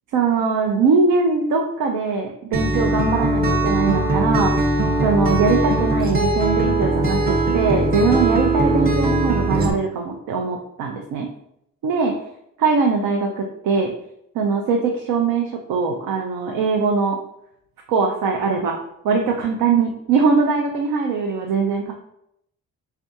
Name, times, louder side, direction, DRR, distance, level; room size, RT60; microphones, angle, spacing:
voice 1, 0.1-4.5 5.0-11.3 11.8-12.1 12.6-13.9 14.3-17.2 17.9-18.8 19.0-21.9, right 4 dB, 85° right, 2 dB, 0.6 m, -21 dB
Acoustic guitar, 2.5-9.7, right 2 dB, 30° right, 0.7 m, -20 dB
3.6 x 3.3 x 2.7 m, 0.76 s
cardioid pair, 90°, 34 cm